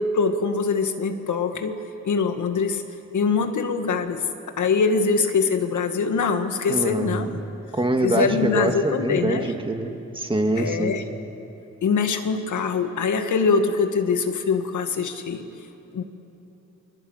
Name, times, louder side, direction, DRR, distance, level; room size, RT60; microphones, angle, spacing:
voice 1, 0.0-1.8 2.1-2.8 3.1-4.2 4.6-7.4 8.0-9.5 10.6-11.0 11.8-15.5 15.9-16.0, left 5 dB, 85° left, 6 dB, 1.8 m, -23 dB
voice 2, 6.7-7.3 7.7-11.0, right 2 dB, 15° right, 4 dB, 2.1 m, -24 dB
28.5 x 22.5 x 8.1 m, 2.9 s
wide cardioid pair, 110°, 29 cm